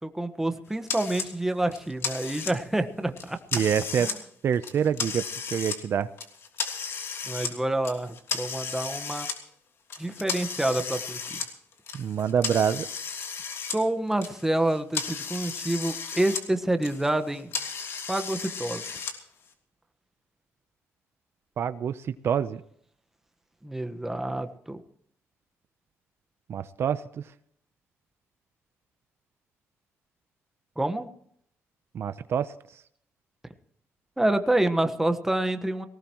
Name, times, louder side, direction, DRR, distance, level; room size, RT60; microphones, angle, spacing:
voice 1, 0.0-3.4 4.0-4.1 7.3-9.3 10.0-11.4 13.7-17.5 18.1-19.0 23.6-24.8 30.8-31.1 34.2-35.8, right 1 dB, 5° right, 8 dB, 1.3 m, -27 dB
sound 1, 0.9-1.3 1.7-2.8 3.2-4.2 4.5-5.8 6.2-7.5 7.8-9.3 9.9-13.8 14.1-16.4 16.7-19.1, left 5 dB, 60° left, 3.1 m, -34 dB
voice 2, 3.5-4.1 4.4-6.1 11.9-12.9 21.6-22.6 26.5-27.0 31.9-32.5, right 8 dB, 55° right, 12 dB, 0.7 m, -26 dB
18.5 x 18.5 x 3.1 m, 0.66 s
cardioid pair, 125°, 5 cm